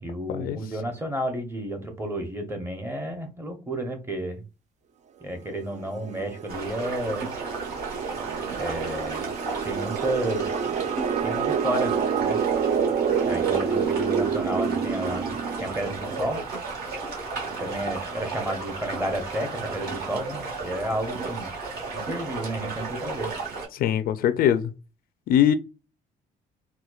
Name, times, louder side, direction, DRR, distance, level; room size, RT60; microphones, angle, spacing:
voice 1, 0.0-4.4 5.2-7.3 8.6-9.2 9.6-10.6 11.2-11.9 12.2-12.4 13.3-16.4 17.6-21.5 21.9-23.3, right 1 dB, 15° right, 0.8 m, -31 dB
sound 1, 5.6-16.1, right 7 dB, 45° right, 0.4 m, -28 dB
sound 2, 6.5-23.7, right 3 dB, 65° right, 1.5 m, -33 dB
voice 2, 23.7-24.7 25.3-25.5, left 10 dB, 60° left, 0.4 m, -22 dB
4.3 x 2.2 x 2.3 m
cardioid pair, 110°, 17 cm